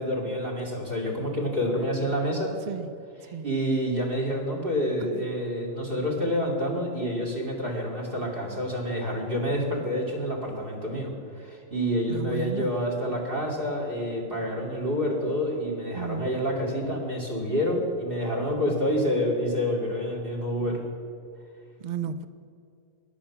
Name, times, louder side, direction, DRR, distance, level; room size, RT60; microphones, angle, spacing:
voice 1, 0.0-2.5 3.2-20.8, equal, 40° right, 1 dB, 2.8 m, -28 dB
voice 2, 12.1-12.7 15.9-16.3 21.8-22.3, right 6 dB, 70° right, 12 dB, 0.4 m, -33 dB
13.5 x 10.5 x 5.9 m, 2.3 s
omnidirectional pair, 1.4 m